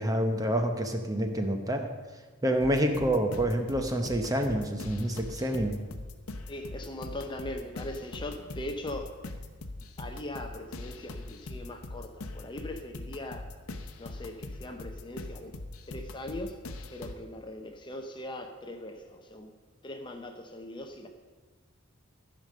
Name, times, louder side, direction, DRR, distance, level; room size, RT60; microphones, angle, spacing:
voice 1, 0.0-1.9 2.4-5.8, right 1 dB, 15° right, 5 dB, 0.8 m, -28 dB
sound 1, 2.6-17.1, left 2 dB, 80° left, 0.8 m, -42 dB
voice 2, 6.5-9.2 10.0-13.5 14.0-15.6 15.9-16.6 16.9-19.5 19.8-21.1, left 1 dB, 20° left, 5 dB, 0.6 m, -40 dB
14.0 x 5.3 x 6.5 m, 1.4 s
head